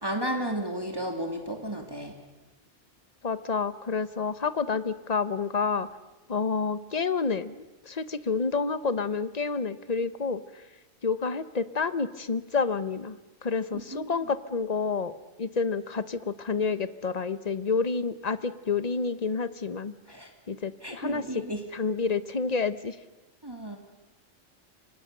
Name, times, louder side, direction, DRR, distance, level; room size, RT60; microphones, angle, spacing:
voice 1, 0.0-2.2 13.9-14.1 20.1-20.3 20.8-21.7 23.4-23.8, right 1 dB, 20° right, 3 dB, 2.5 m, -33 dB
voice 2, 3.2-5.9 6.3-10.4 11.0-15.1 15.4-19.9 20.5-21.2 21.7-23.0, left 5 dB, 35° left, 14 dB, 0.9 m, -29 dB
28.0 x 25.0 x 6.7 m, 1.1 s
omnidirectional pair, 1.4 m